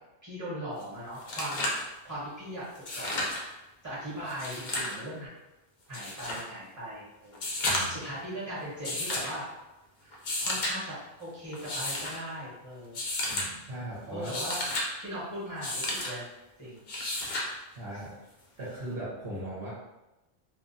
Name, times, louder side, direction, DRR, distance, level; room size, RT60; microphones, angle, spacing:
voice 1, 0.2-1.7 2.0-3.3 3.8-5.3 5.9-7.4 7.9-9.5 10.0-13.0 14.1-14.6 15.0-16.2 16.6-16.8, equal, 15° right, -9 dB, 1.0 m, -39 dB
sound 1, 0.8-0.9 1.1-1.9 2.7-3.4 4.3-5.0 5.9-6.4 7.3-8.1 8.8-9.3 10.1-10.7 11.5-12.2 12.9-13.5 14.1-14.9 15.6-16.1 16.9-17.5 18.9-19.0, left 1 dB, 55° left, 0.6 m, -32 dB
voice 2, 7.6-8.0 13.3-14.3 17.7-18.1 18.6-19.7, right 1 dB, 60° right, -8 dB, 0.9 m, -38 dB
2.3 x 2.2 x 2.6 m, 0.99 s
omnidirectional pair, 1.1 m